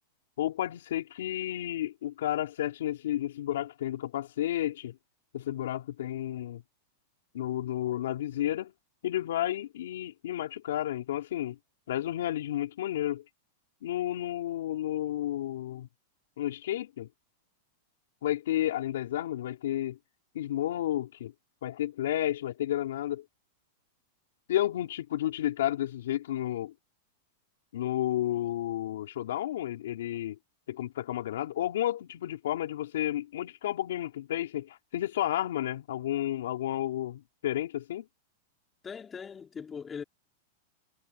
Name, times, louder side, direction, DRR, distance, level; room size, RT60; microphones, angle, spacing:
voice 1, 0.4-5.0 5.3-6.6 7.3-8.7 9.0-11.6 11.9-13.2 13.8-15.9 16.4-17.1 18.2-20.0 20.3-21.3 21.6-23.2 24.5-26.7 27.7-30.4 30.7-38.1, left 12 dB, 80° left, 3.8 m, -31 dB
voice 2, 38.8-40.0, left 6 dB, 15° left, 3.6 m, -40 dB
supercardioid pair, 150°, 0 cm